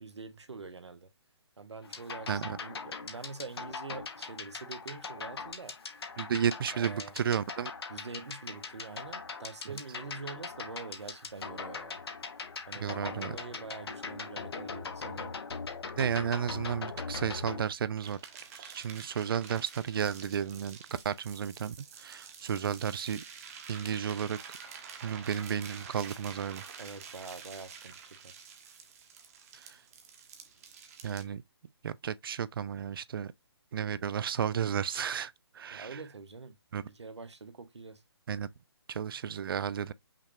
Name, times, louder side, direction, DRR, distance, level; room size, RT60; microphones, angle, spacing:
voice 1, 0.0-1.1 1.6-5.7 6.7-7.1 7.9-12.0 12.7-15.3 26.8-28.4 35.7-36.5 36.9-38.0, right 4 dB, 85° right, 0.9 m, -45 dB
sound 1, 1.8-17.7, left 5 dB, 65° left, 1.0 m, -41 dB
voice 2, 6.2-7.7 9.7-9.8 12.8-13.4 15.9-18.2 18.5-23.2 23.7-24.4 25.0-26.6 29.5-29.8 31.0-31.4 31.8-33.3 33.7-36.0 36.7-36.9 38.3-38.5 38.9-39.9, right 8 dB, 55° right, 0.4 m, -33 dB
sound 2, 18.0-31.2, right 6 dB, 35° right, 1.0 m, -48 dB
5.7 x 2.4 x 3.2 m
hypercardioid pair, 150°, 14 cm